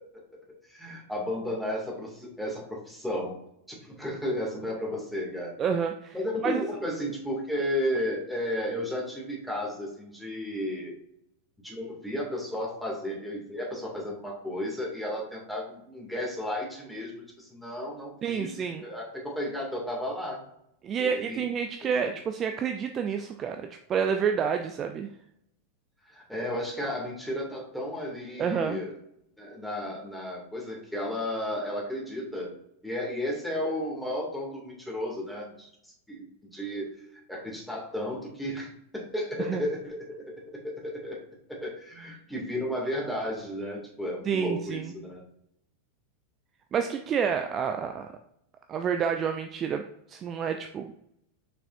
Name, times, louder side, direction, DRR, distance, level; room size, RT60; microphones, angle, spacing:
voice 1, 0.7-3.4 3.7-5.5 6.1-10.9 11.6-20.4 21.0-21.4 21.8-21.9 26.0-28.9 29.4-32.5 32.8-36.3 36.5-40.3 40.6-41.2 41.5-45.2, left 1 dB, ahead, -3 dB, 2.3 m, -33 dB
voice 2, 5.6-6.2 6.4-6.6 18.2-18.8 20.8-25.1 28.4-28.8 39.4-39.6 44.3-44.9 46.7-48.1 48.7-49.8 50.1-50.9, right 7 dB, 30° right, 6 dB, 0.4 m, -29 dB
6.7 x 5.6 x 2.6 m, 0.76 s
figure-of-eight pair, 90°, 0 cm